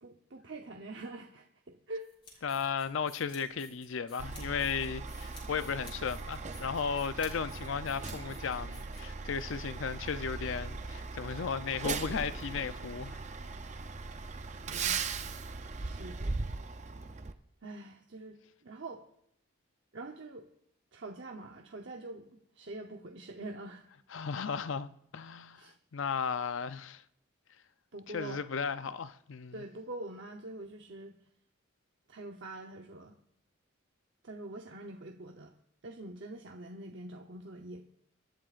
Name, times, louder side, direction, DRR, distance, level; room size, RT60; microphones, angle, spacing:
voice 1, 0.0-2.1 2.3-2.4 14.7-15.0 15.8-16.5 17.6-19.0 19.9-20.5 20.9-22.3 22.6-23.8 25.5-25.7 27.9-28.4 29.5-31.1 32.1-33.2 34.2-35.5 35.8-37.9, right 2 dB, 60° right, 0.8 m, -45 dB
sound 1, 2.0-9.4, left 3 dB, 25° left, 4.6 m, -54 dB
voice 2, 2.4-13.2 24.1-25.6 25.9-27.0 28.1-29.5, left 6 dB, 70° left, 0.5 m, -35 dB
Truck, 4.2-17.3, right 4 dB, 35° right, 0.5 m, -39 dB
25.5 x 11.5 x 2.5 m
head